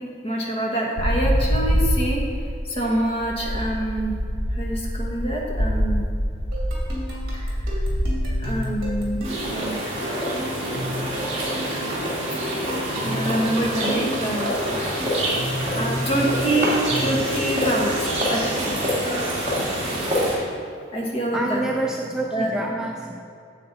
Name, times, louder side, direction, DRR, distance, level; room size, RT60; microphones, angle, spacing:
voice 1, 0.0-2.2 2.6-4.1 4.5-6.0 7.3-7.8 8.4-9.9 13.0-14.6 14.9-15.2 15.8-18.8 20.9-21.6 22.3-22.6, right 1 dB, 30° left, -2 dB, 1.4 m, -26 dB
sound 1, 1.0-9.1, equal, 85° left, 1.0 m, -25 dB
sound 2, 6.5-18.8, left 1 dB, 50° right, 2.4 m, -33 dB
sound 3, 9.2-20.3, equal, 35° right, 2.3 m, -26 dB
voice 2, 21.3-23.2, right 1 dB, 5° right, -1 dB, 0.4 m, -27 dB
9.1 x 7.6 x 4.2 m, 2.5 s
head